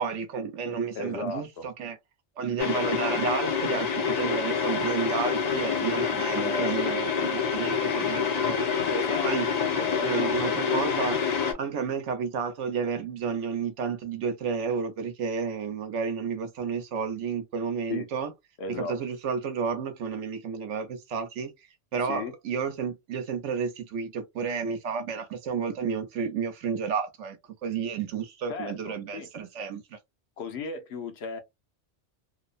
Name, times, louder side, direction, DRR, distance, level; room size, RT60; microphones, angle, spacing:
voice 1, 0.0-2.0 2.4-8.6 9.2-9.5 10.0-11.2 11.5-18.3 18.7-21.5 21.9-27.4 27.6-30.0, right 6 dB, 85° right, 1.0 m, -31 dB
voice 2, 1.0-1.6 6.4-6.9 8.9-9.3 9.7-10.1 17.9-18.1 18.6-19.0 22.0-22.3 28.5-29.3 30.4-31.4, left 3 dB, 70° left, 0.9 m, -35 dB
sound 1, 2.6-11.5, left 6 dB, 50° left, 0.5 m, -27 dB
2.8 x 2.0 x 2.4 m
omnidirectional pair, 1.2 m